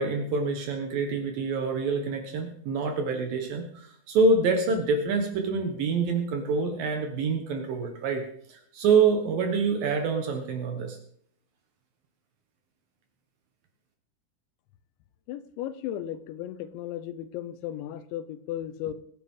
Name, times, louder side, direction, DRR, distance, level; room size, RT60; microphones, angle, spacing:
voice 1, 0.0-11.0, right 4 dB, 65° right, 4 dB, 2.6 m, -26 dB
voice 2, 15.3-18.9, left 11 dB, 90° left, 12 dB, 3.1 m, -35 dB
22.5 x 9.6 x 3.7 m, 0.65 s
omnidirectional pair, 5.1 m